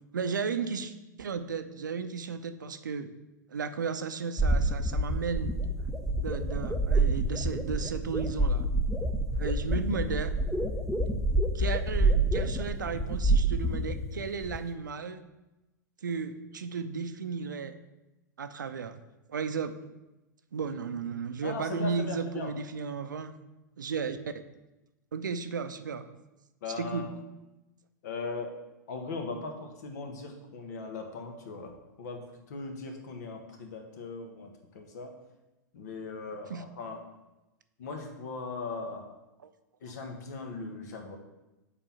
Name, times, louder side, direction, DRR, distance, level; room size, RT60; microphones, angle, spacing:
voice 1, 0.1-3.1 3.5-5.5 6.2-8.6 9.3-10.3 11.5-15.2 16.0-17.7 18.4-19.0 19.3-19.7 20.5-23.3 23.8-24.2 25.1-26.0 26.8-27.1 36.5-36.6 39.4-39.5, right 5 dB, 80° right, 10 dB, 0.6 m, -34 dB
sound 1, 4.4-14.6, right 2 dB, 5° left, 0.6 m, -28 dB
voice 2, 21.4-22.5 26.6-27.1 28.0-28.5 28.9-32.2 32.5-35.1 35.7-37.0 37.8-39.1 39.8-41.2, left 3 dB, 60° left, 4 dB, 1.4 m, -39 dB
7.1 x 4.4 x 5.7 m, 1.0 s
figure-of-eight pair, 95°, 10 cm